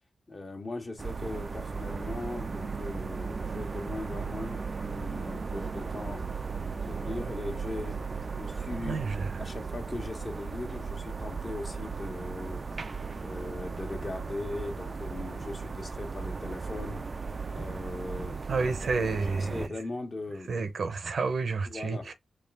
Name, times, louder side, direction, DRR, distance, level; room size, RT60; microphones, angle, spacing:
voice 1, 0.3-6.3 6.8-8.0 8.4-9.0 9.4-12.7 13.2-17.0 17.5-18.7 19.0-20.5 21.7-22.1, left 2 dB, 50° left, 1.3 m, -39 dB
sound 1, 1.0-19.7, right 5 dB, 50° right, 0.3 m, -36 dB
voice 2, 8.9-9.3 18.5-19.7 20.5-22.1, right 4 dB, 75° right, 0.7 m, -30 dB
4.6 x 2.4 x 3.5 m
supercardioid pair, 40°, 0 cm